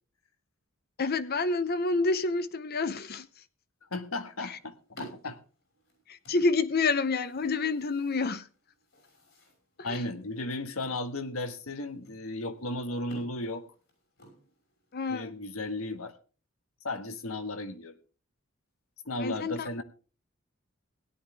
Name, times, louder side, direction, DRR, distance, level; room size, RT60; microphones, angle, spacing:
voice 1, 1.0-3.4 4.4-4.6 6.1-8.5 9.8-10.1 14.9-15.3 19.2-19.7, left 3 dB, 45° left, 0.7 m, -28 dB
voice 2, 3.9-5.4 9.8-13.6 15.1-16.1 16.8-18.0 19.0-19.8, left 2 dB, 85° left, 1.4 m, -35 dB
sound 1, 4.0-15.0, right 1 dB, 65° left, 6.2 m, -54 dB
17.0 x 10.5 x 3.4 m
head